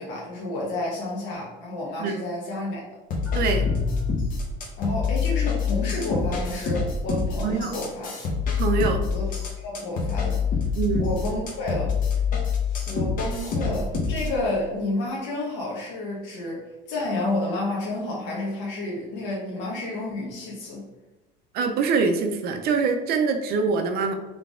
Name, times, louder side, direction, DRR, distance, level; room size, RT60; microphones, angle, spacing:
voice 1, 0.0-2.8 4.8-8.2 9.1-9.3 9.6-10.4 11.0-11.9 12.9-20.9, left 2 dB, 65° left, -4 dB, 1.1 m, -30 dB
sound 1, 3.1-14.4, left 5 dB, 45° left, 1.0 m, -26 dB
sound 2, 3.3-4.7, right 2 dB, 5° left, 1.5 m, -34 dB
voice 2, 3.3-3.7 7.4-7.7 8.6-9.0 10.8-11.1 21.5-24.1, right 5 dB, 55° right, 6 dB, 0.6 m, -24 dB
3.9 x 3.4 x 3.6 m, 1.1 s
cardioid pair, 160°, 20 cm